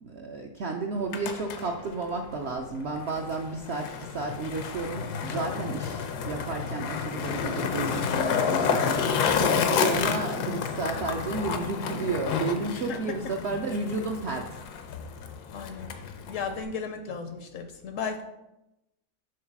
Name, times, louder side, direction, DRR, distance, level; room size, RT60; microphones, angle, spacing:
voice 1, 0.0-14.6, right 3 dB, 70° right, 3 dB, 0.6 m, -32 dB
Skateboard, 0.9-16.6, left 6 dB, 85° left, 1.2 m, -30 dB
voice 2, 15.5-15.9 16.3-18.2, left 5 dB, 65° left, 7 dB, 0.8 m, -34 dB
6.4 x 3.9 x 5.8 m, 0.94 s
omnidirectional pair, 1.7 m